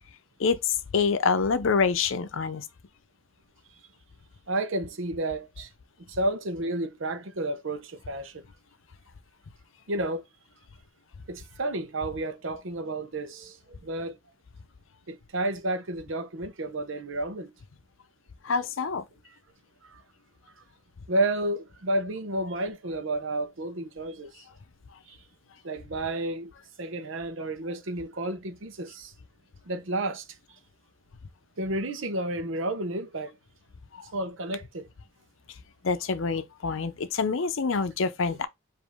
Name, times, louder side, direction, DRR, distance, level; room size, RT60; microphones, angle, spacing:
voice 1, 0.4-2.6 18.4-19.0 33.9-34.1 35.8-38.5, left 5 dB, 75° left, 0.6 m, -26 dB
voice 2, 4.5-5.7 6.0-8.4 9.9-10.2 11.3-14.2 15.1-17.5 19.8-20.0 21.1-24.4 25.1-25.2 25.6-26.5 26.8-29.1 29.7-30.3 31.6-33.4 34.1-34.9, right 1 dB, 75° right, 0.8 m, -31 dB
5.1 x 2.6 x 3.5 m
head